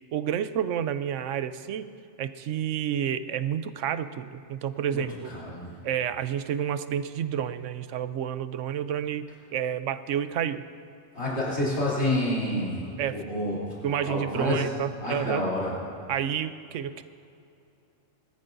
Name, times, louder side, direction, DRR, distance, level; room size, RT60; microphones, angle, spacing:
voice 1, 0.1-1.9 2.2-5.3 5.8-10.6 13.0-13.2 13.8-15.4 16.1-17.0, right 9 dB, 90° right, 12 dB, 1.0 m, -30 dB
voice 2, 4.9-5.7 11.1-13.7 14.0-14.7 15.0-15.7, left 1 dB, 60° left, -7 dB, 3.4 m, -29 dB
21.0 x 13.5 x 2.6 m, 2.7 s
omnidirectional pair, 1.2 m